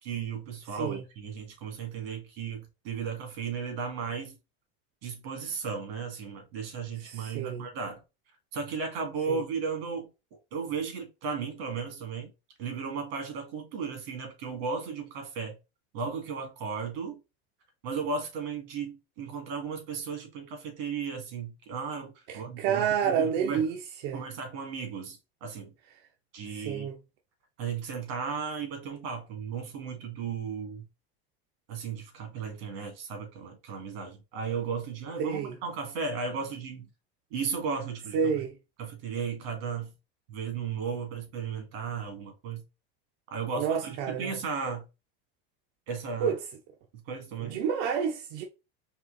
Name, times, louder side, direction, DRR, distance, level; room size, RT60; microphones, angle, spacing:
voice 1, 0.0-4.4 5.0-8.0 8.5-10.1 10.5-12.3 12.6-15.6 15.9-17.2 17.8-23.7 24.1-25.7 26.3-26.9 27.6-30.9 31.7-36.9 37.3-38.2 38.8-39.9 40.3-42.6 43.3-44.8 45.9-46.3 46.9-47.6, right 5 dB, 85° right, 2.0 m, -35 dB
voice 2, 0.7-1.0 7.0-7.7 9.3-9.4 22.3-23.8 24.0-24.2 26.5-27.0 35.2-35.5 38.1-38.6 43.6-44.4 46.2-46.4 47.4-48.4, right 7 dB, 60° right, 0.8 m, -29 dB
4.3 x 3.0 x 3.8 m
cardioid pair, 165°, 29 cm